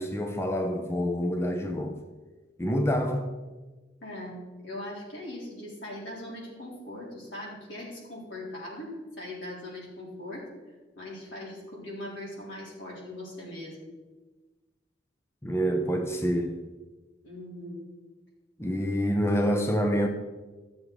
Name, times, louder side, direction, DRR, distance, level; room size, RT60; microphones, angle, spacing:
voice 1, 0.0-2.0 2.6-3.3 15.4-16.6 18.6-20.1, equal, 15° left, 0.7 m, -27 dB
voice 2, 4.0-10.5 11.0-13.8 17.2-17.8, left 1 dB, 85° left, 4.1 m, -40 dB
13.5 x 7.3 x 4.8 m
head